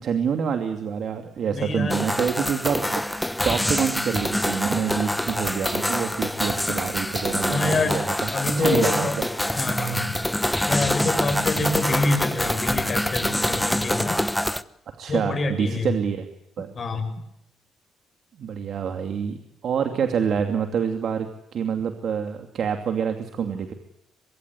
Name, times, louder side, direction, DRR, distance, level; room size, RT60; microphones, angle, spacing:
voice 1, 0.0-2.9 3.4-8.1 8.6-9.3 15.0-16.3 16.6-16.7 18.4-19.4 19.6-23.7, right 7 dB, 65° right, 5 dB, 2.6 m, -26 dB
voice 2, 1.5-2.0 7.5-8.0 8.3-9.2 9.6-10.2 10.7-14.2 15.1-16.0 16.7-17.1, left 2 dB, 40° left, 6 dB, 7.5 m, -26 dB
sound 1, 1.9-14.6, left 1 dB, 5° left, 1.1 m, -25 dB
24.0 x 22.5 x 9.6 m, 0.80 s
cardioid pair, 90°, 0 cm